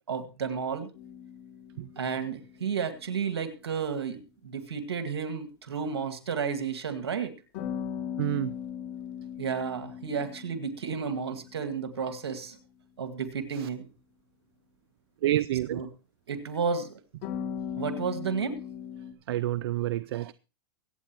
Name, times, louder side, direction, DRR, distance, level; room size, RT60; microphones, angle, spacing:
voice 1, 0.1-0.9 2.0-7.3 9.4-12.6 13.0-13.9 15.7-15.9 16.3-17.0 17.8-18.6, right 6 dB, 90° right, 7 dB, 2.1 m, -32 dB
sound 1, 0.9-3.2 7.5-12.3 17.2-19.1, left 8 dB, 50° left, 2.4 m, -39 dB
voice 2, 8.2-8.5 15.2-15.8 19.3-20.3, right 14 dB, 70° right, 17 dB, 0.5 m, -28 dB
23.5 x 8.9 x 3.0 m, 0.32 s
hypercardioid pair, 115°, 13 cm